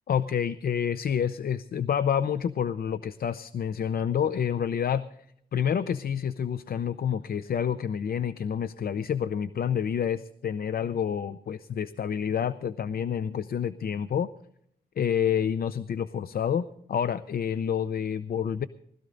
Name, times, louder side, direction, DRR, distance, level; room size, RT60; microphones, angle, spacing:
voice 1, 0.1-5.0 5.5-14.3 15.0-18.6, left 8 dB, 65° left, 14 dB, 0.6 m, -28 dB
20.0 x 14.0 x 3.9 m, 0.69 s
wide cardioid pair, 115°, 17 cm